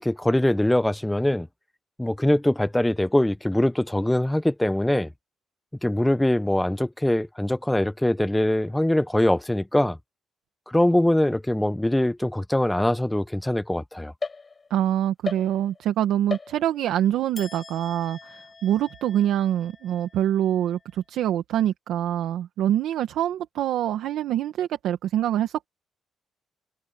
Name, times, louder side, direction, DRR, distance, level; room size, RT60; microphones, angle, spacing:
voice 1, 0.0-1.5 2.0-5.1 5.8-10.0 10.7-14.1, left 1 dB, 5° left, 0.9 m, -22 dB
sound 1, 14.2-14.9 15.2-15.9 16.3-17.0 17.3-20.8, left 4 dB, 30° left, 7.8 m, -38 dB
voice 2, 14.7-25.7, right 11 dB, 80° right, 1.2 m, -25 dB
cardioid pair, 90°, 0 cm